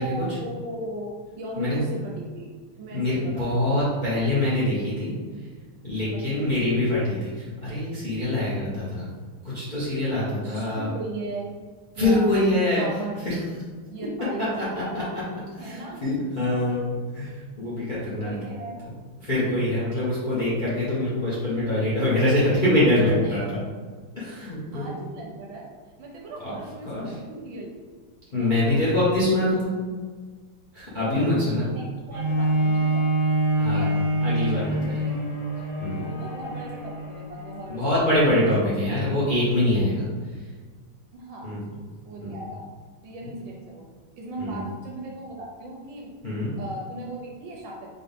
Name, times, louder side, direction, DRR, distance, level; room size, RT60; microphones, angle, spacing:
voice 1, 0.0-2.5 2.8-3.8 6.1-6.2 6.5-6.6 10.4-11.6 12.0-12.3 12.8-13.2 13.9-14.6 15.6-16.1 18.0-18.8 23.2-23.4 24.7-25.7 26.0-27.8 28.3-28.8 30.9-33.1 33.6-33.9 34.5-35.3 35.9-39.0 41.1-41.6 42.0-42.6 43.0-43.9 44.2-46.1 46.6-47.9, right 2 dB, 70° right, -2 dB, 1.2 m, -38 dB
voice 2, 2.9-5.1 5.8-9.1 9.4-10.9 11.9-12.8 13.2-13.4 14.6-14.7 14.9-15.2 15.5-17.3 17.6-18.4 18.8-18.9 19.2-23.6 24.2-24.9 26.4-26.6 26.8-27.1 28.3-29.7 30.7-31.7 33.6-35.1 35.8-36.1 37.7-40.1 41.4-41.6 42.2-42.4 43.2-43.3 44.4-44.6 46.2-46.5, left 1 dB, 35° left, -9 dB, 0.7 m, -24 dB
Bowed string instrument, 32.1-37.7 38.4-38.5, right 1 dB, 70° left, 2.2 m, -25 dB
3.9 x 3.3 x 3.5 m, 1.5 s
omnidirectional pair, 2.4 m